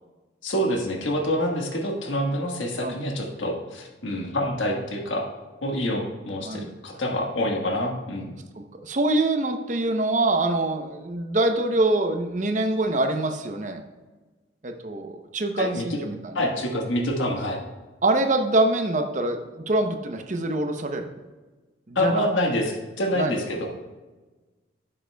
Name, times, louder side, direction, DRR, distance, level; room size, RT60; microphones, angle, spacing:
voice 1, 0.4-5.3 5.6-8.4 15.6-16.0 16.3-17.6 21.9-23.7, left 1 dB, 90° left, 1 dB, 1.4 m, -26 dB
voice 2, 8.6-13.8 14.6-16.4 18.0-21.1 21.9-22.2 23.1-23.4, right 2 dB, 40° right, 5 dB, 0.7 m, -25 dB
11.0 x 7.6 x 2.3 m, 1.2 s
head